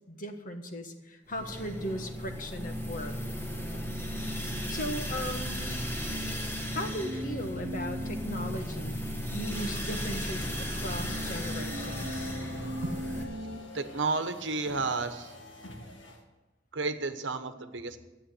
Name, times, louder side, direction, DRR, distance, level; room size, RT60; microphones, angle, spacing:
voice 1, 0.1-3.2 4.7-5.8 6.7-12.3, equal, 45° left, 5 dB, 1.5 m, -38 dB
sound 1, 1.3-13.2, equal, 15° left, 1.7 m, -36 dB
sound 2, 3.6-13.6, equal, 35° right, 1.1 m, -40 dB
sound 3, 9.5-16.2, left 1 dB, 85° left, 2.0 m, -45 dB
voice 2, 13.7-15.4 16.7-18.0, right 3 dB, 80° right, 9 dB, 1.1 m, -32 dB
13.0 x 9.0 x 7.8 m, 1.1 s
head